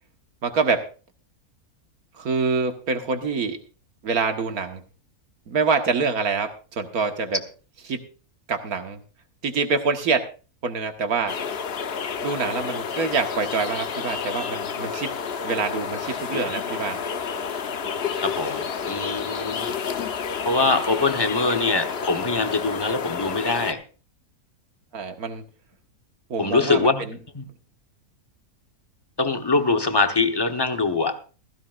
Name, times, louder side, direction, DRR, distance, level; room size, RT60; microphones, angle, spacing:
voice 1, 0.4-0.9 2.1-3.6 4.0-4.8 5.5-7.4 7.9-8.0 8.5-9.0 9.4-10.2 10.6-11.4 12.2-15.1 15.4-17.0 24.9-25.4 26.3-27.2, right 4 dB, 75° right, 6 dB, 2.0 m, -25 dB
sound 1, 11.3-23.7, left 6 dB, 50° left, 1.0 m, -30 dB
voice 2, 17.8-19.7 20.4-23.8 26.4-27.1 27.3-27.4 29.2-31.2, left 3 dB, 20° left, 7 dB, 0.9 m, -23 dB
16.0 x 15.5 x 2.5 m, 0.35 s
omnidirectional pair, 1.6 m